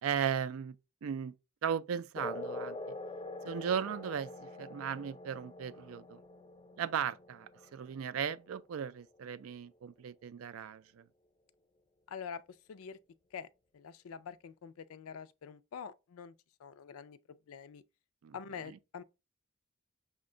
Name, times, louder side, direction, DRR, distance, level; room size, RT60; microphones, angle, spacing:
voice 1, 0.0-0.8 1.0-1.3 1.6-2.8 3.4-6.2 6.8-11.0 18.2-18.4, right 8 dB, 75° right, 0.4 m, -36 dB
sound 1, 2.2-9.2, left 2 dB, 25° left, 0.4 m, -45 dB
voice 2, 12.1-13.0 13.3-13.5 13.7-16.3 16.6-17.8 18.3-19.0, left 6 dB, 85° left, 0.4 m, -46 dB
6.1 x 2.2 x 3.7 m
head